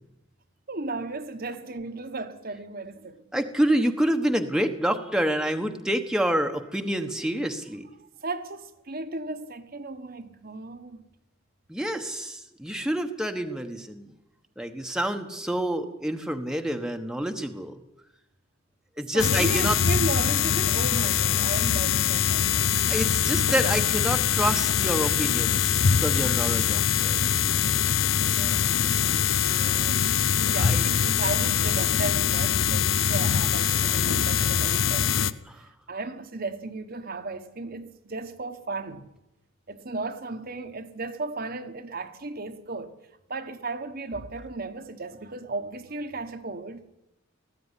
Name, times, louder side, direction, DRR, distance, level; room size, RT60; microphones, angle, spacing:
voice 1, 0.7-3.2 8.2-11.0 19.1-22.7 28.4-30.0 30.5-39.1 39.7-42.9 43.3-46.8, right 3 dB, 45° right, 1.3 m, -35 dB
voice 2, 3.3-7.9 11.7-14.1 14.6-17.7 19.0-19.8 22.9-27.3 30.4-30.9 35.5-35.7, right 1 dB, 5° right, 1.2 m, -28 dB
sound 1, 19.2-35.3, left 8 dB, 70° left, 0.7 m, -23 dB
19.0 x 14.5 x 9.9 m
head